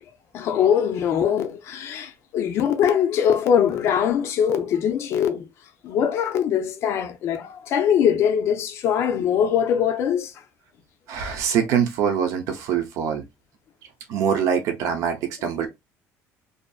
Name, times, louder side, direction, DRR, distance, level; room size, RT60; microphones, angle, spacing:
voice 1, 0.3-5.5 5.8-10.3, left 8 dB, 50° left, 0.5 m, -22 dB
voice 2, 11.1-13.2 14.1-15.7, right 8 dB, 65° right, 0.7 m, -24 dB
2.6 x 2.5 x 2.3 m
cardioid pair, 170°, 6 cm